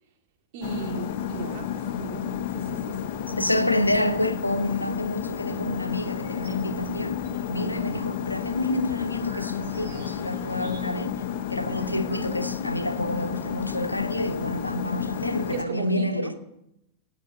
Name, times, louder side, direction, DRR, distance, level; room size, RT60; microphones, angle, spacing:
voice 1, 0.5-3.2 15.5-16.4, right 6 dB, 50° right, 2.4 m, -37 dB
sound 1, 0.6-15.6, left 9 dB, 50° left, 0.8 m, -31 dB
voice 2, 3.3-11.2 11.5-16.4, left 1 dB, 85° left, 0.9 m, -28 dB
sound 2, 6.0-6.6 7.0-11.2 11.4-11.5 11.7-12.7, right 3 dB, 70° right, 6.4 m, -49 dB
18.5 x 8.3 x 6.4 m
figure-of-eight pair, 90°, 0 cm